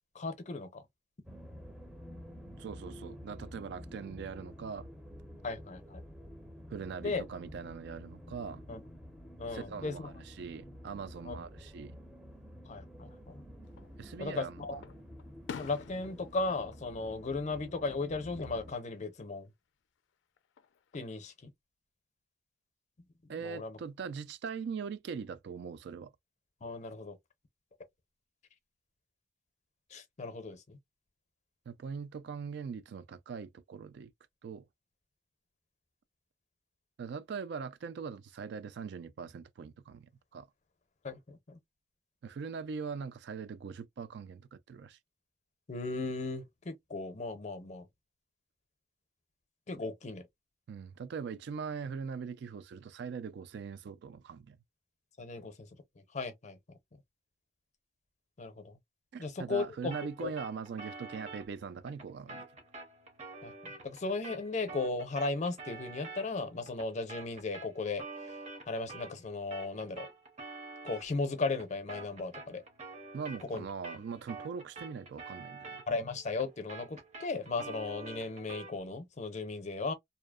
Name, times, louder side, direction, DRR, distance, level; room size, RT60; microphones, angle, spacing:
voice 1, 0.1-0.8 5.4-6.0 7.0-7.2 8.7-8.8 9.4-10.1 11.3-11.4 12.7-13.4 14.2-14.8 15.6-19.5 20.9-21.5 23.4-23.8 26.6-27.2 29.9-30.8 41.0-41.6 45.7-47.9 49.7-50.3 55.2-55.7 56.1-56.6 58.4-58.7 59.2-59.9 60.2-60.3 63.4-68.0 68.7-70.1 70.8-72.6 73.5-73.6 75.9-79.9, left 3 dB, 40° left, 0.6 m, -36 dB
sound 1, 1.2-18.8, equal, 5° right, 0.5 m, -50 dB
voice 2, 2.6-4.9 6.7-8.6 9.5-12.0 14.0-14.6 23.3-26.1 31.7-34.1 34.4-34.7 37.0-40.5 42.2-45.0 50.7-54.6 59.1-62.5 73.1-75.8, right 6 dB, 65° right, 0.3 m, -41 dB
Fireworks, 13.6-14.3 14.8-17.9 18.3-18.8 20.4-21.2, left 6 dB, 90° left, 0.3 m, -49 dB
sound 2, 59.9-69.2 69.5-78.8, right 3 dB, 40° right, 0.7 m, -48 dB
2.7 x 2.0 x 2.3 m
head